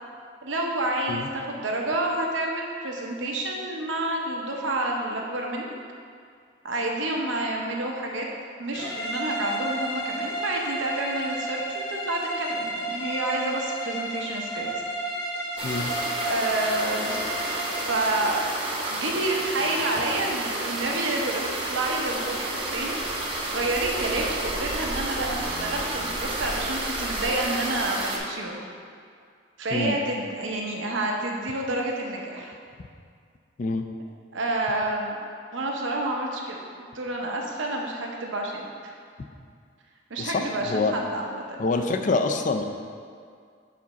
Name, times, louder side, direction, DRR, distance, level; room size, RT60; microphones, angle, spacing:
voice 1, 0.4-5.7 6.6-8.3 8.6-14.7 16.2-17.2 17.7-18.4 18.9-23.0 23.3-28.7 29.6-32.5 34.3-35.2 35.5-38.9 40.1-41.6, right 2 dB, 85° right, 0 dB, 0.8 m, -29 dB
sound 1, 8.7-18.2, right 1 dB, 70° left, 0.8 m, -32 dB
sound 2, 15.6-28.2, right 2 dB, 30° right, 0.8 m, -31 dB
voice 2, 40.2-40.9 41.6-42.6, left 3 dB, 40° left, 6 dB, 0.3 m, -26 dB
5.0 x 4.0 x 5.7 m, 2.2 s
head